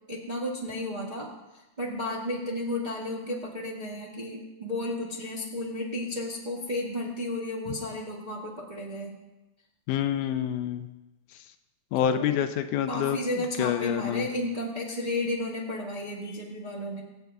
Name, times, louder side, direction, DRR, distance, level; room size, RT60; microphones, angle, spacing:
voice 1, 0.1-1.3 1.5-9.1 11.9-12.5 12.9-17.0, left 1 dB, 30° right, -4 dB, 0.8 m, -33 dB
voice 2, 9.9-10.9 11.9-14.3, left 10 dB, 85° left, 9 dB, 2.1 m, -27 dB
24.0 x 8.1 x 2.3 m, 1.0 s
omnidirectional pair, 3.5 m